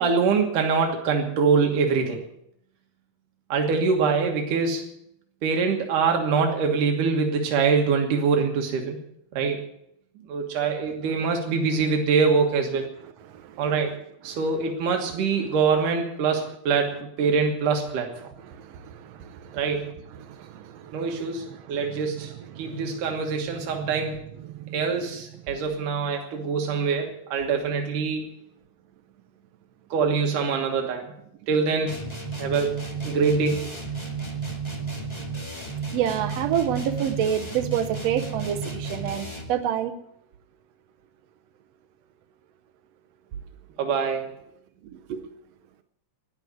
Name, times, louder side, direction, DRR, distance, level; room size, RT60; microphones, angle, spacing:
voice 1, 0.0-2.2 3.5-4.9 5.4-9.0 9.3-9.7 10.3-12.9 13.6-13.9 14.2-18.1 19.5-19.9 20.9-24.2 24.7-28.3 29.9-31.1 31.5-32.1 32.4-33.7 43.8-44.3, right 5 dB, 85° right, 3 dB, 3.1 m, -24 dB
voice 2, 13.3-13.7 18.4-19.8 20.2-23.2 23.6-23.9 24.4-24.7 35.9-40.0 44.8-45.3, right 9 dB, 70° right, 6 dB, 1.7 m, -30 dB
sound 1, 31.9-39.6, right 4 dB, 10° left, 1.3 m, -33 dB
13.0 x 11.0 x 9.3 m, 0.77 s
omnidirectional pair, 3.6 m